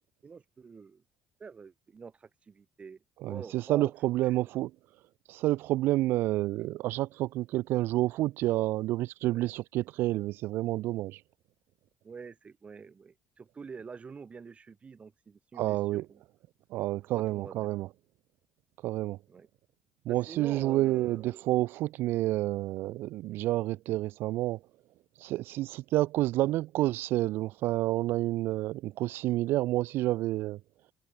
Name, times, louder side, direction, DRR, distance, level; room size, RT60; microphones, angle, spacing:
voice 1, 0.2-1.0 1.4-3.9 4.2-4.3 9.2-9.5 12.0-16.2 17.1-17.7 19.3-19.5 20.1-21.4, right 5 dB, 35° right, 3.0 m, -46 dB
voice 2, 3.2-4.7 5.3-11.2 15.5-16.1 16.7-17.9 18.8-19.2 20.1-24.6 25.2-30.6, right 16 dB, 75° right, 0.6 m, -29 dB
supercardioid pair, 80°, 4 cm